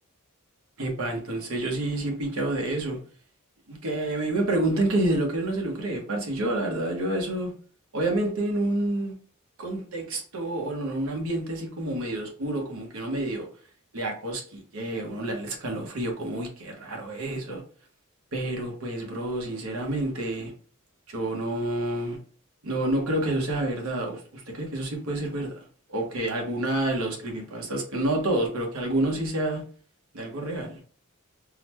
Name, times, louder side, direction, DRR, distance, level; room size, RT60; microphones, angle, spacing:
voice 1, 0.8-3.0 3.7-7.5 7.9-9.1 9.6-13.5 13.9-17.6 18.3-20.5 21.1-22.2 22.6-25.5 25.9-29.6 30.1-30.8, right 1 dB, 70° right, 1.0 m, -28 dB
3.8 x 2.1 x 2.9 m
head